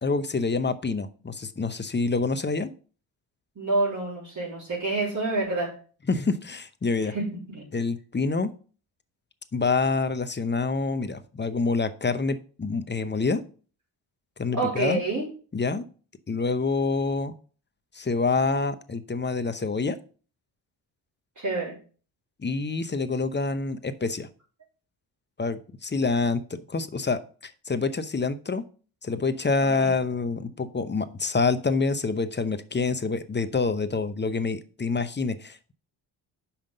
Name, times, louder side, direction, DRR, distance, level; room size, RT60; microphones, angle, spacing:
voice 1, 0.0-2.7 6.1-7.1 7.7-8.5 9.5-13.4 14.4-15.0 15.5-15.8 16.3-17.3 17.9-20.0 22.4-24.3 25.4-26.4 26.7-28.6 29.0-35.7, left 4 dB, 25° left, 11 dB, 0.8 m, -27 dB
voice 2, 3.6-5.7 7.0-7.7 14.5-15.3 21.4-21.8 29.7-29.9, right 2 dB, 40° right, -4 dB, 3.5 m, -28 dB
5.8 x 5.1 x 6.6 m, 0.39 s
supercardioid pair, 65°, 47 cm